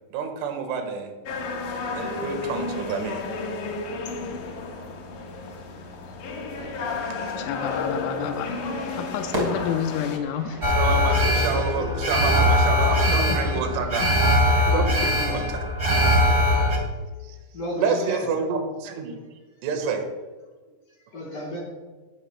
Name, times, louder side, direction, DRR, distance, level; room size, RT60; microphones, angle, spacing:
voice 1, 0.1-1.1 2.0-3.2 10.8-14.3 14.7-15.7 17.2-17.4 17.8-19.2 19.6-20.0, right 5 dB, 75° right, 5 dB, 3.9 m, -28 dB
sound 1, 1.3-10.2, left 3 dB, 70° left, 1.9 m, -32 dB
Fire / Fireworks, 6.6-12.1, right 1 dB, 20° right, 3.1 m, -36 dB
voice 2, 7.4-8.5 9.0-10.6 13.3-13.4, left 9 dB, 90° left, 5 dB, 3.3 m, -29 dB
Alarm, 10.6-16.8, left 1 dB, 55° right, 0.7 m, -21 dB
voice 3, 11.1-11.9 12.9-13.0 17.5-18.3 21.1-21.6, equal, 45° left, -4 dB, 5.5 m, -33 dB
20.0 x 12.5 x 2.2 m, 1.3 s
omnidirectional pair, 5.6 m